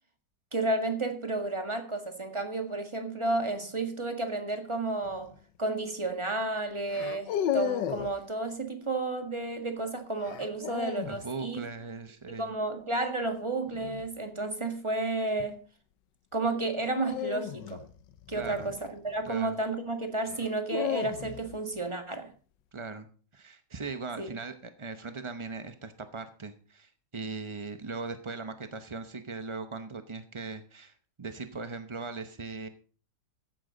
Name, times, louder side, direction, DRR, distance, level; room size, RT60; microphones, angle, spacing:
voice 1, 0.5-5.3 5.6-11.6 12.4-15.6 16.3-17.8 18.3-22.3 24.2-24.3, right 2 dB, 15° right, 5 dB, 1.8 m, -32 dB
sound 1, 5.0-5.4 6.9-8.2 10.3-11.2 13.7-14.1 16.9-19.2 20.3-21.6, left 10 dB, 85° left, 1.5 m, -34 dB
voice 2, 11.0-12.5 18.3-18.7 19.2-19.6 22.7-23.1 23.3-32.7, right 4 dB, 35° right, 9 dB, 0.4 m, -39 dB
14.5 x 11.0 x 3.9 m, 0.39 s
omnidirectional pair, 1.9 m